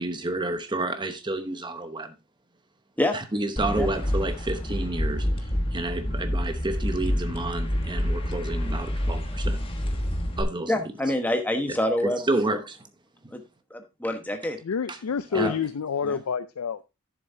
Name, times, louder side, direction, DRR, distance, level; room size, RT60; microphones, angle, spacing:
voice 1, 0.0-2.1 3.1-5.3 5.7-9.6 10.4-10.7 12.0-12.8 14.9-15.0 15.3-15.5, right 2 dB, 20° right, 0.9 m, -30 dB
sound 1, 3.6-10.4, equal, 25° left, 1.3 m, -28 dB
voice 2, 10.7-12.6 13.3-13.4 13.7-14.6 15.3-15.6 16.0-16.2, left 1 dB, 5° left, 1.1 m, -27 dB
voice 3, 14.6-16.9, left 6 dB, 75° left, 0.5 m, -28 dB
11.0 x 7.1 x 2.7 m
head